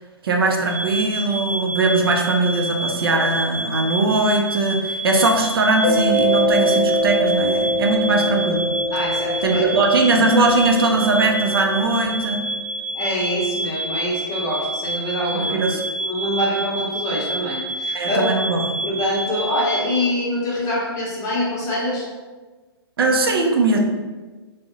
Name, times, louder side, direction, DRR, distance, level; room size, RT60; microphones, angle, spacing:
voice 1, 0.2-8.7 9.4-12.4 15.3-15.8 17.9-18.7 23.0-23.8, right 2 dB, 60° right, 2 dB, 0.4 m, -20 dB
sound 1, 0.7-20.0, right 1 dB, 20° right, 0.9 m, -28 dB
Mallet percussion, 5.8-12.2, equal, 50° left, 0.6 m, -23 dB
voice 2, 8.9-9.7 12.9-18.2 18.8-22.1, left 1 dB, 20° left, -5 dB, 0.8 m, -25 dB
3.5 x 2.1 x 2.6 m, 1.3 s
figure-of-eight pair, 120°, 14 cm